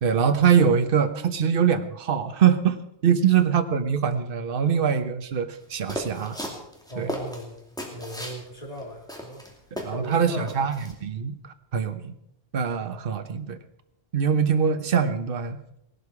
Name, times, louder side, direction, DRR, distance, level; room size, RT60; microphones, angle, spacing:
voice 1, 0.0-6.4 7.0-7.1 9.7-10.7 11.0-11.4 11.7-12.1 12.5-13.6 14.1-15.6, right 7 dB, 55° right, 9 dB, 1.1 m, -23 dB
sound 1, 5.9-8.4 8.8-8.9 9.1-10.2 10.5-10.9, equal, 5° left, 2.5 m, -35 dB
voice 2, 6.9-7.6 7.9-9.6 9.9-10.5, equal, 35° left, 0 dB, 2.6 m, -38 dB
17.5 x 12.0 x 4.8 m, 0.76 s
omnidirectional pair, 1.1 m